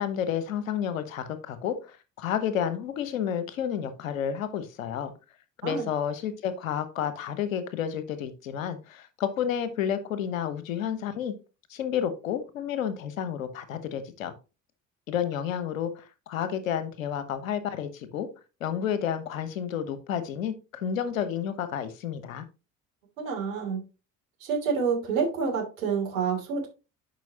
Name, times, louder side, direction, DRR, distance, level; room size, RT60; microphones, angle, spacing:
voice 1, 0.0-5.1 5.6-11.3 11.7-14.3 15.1-18.3 18.6-22.4, left 8 dB, 75° left, 1.2 m, -31 dB
voice 2, 23.2-23.8 24.4-26.7, right 5 dB, 75° right, 3.0 m, -28 dB
10.5 x 5.6 x 2.9 m
figure-of-eight pair, 55°, 40 cm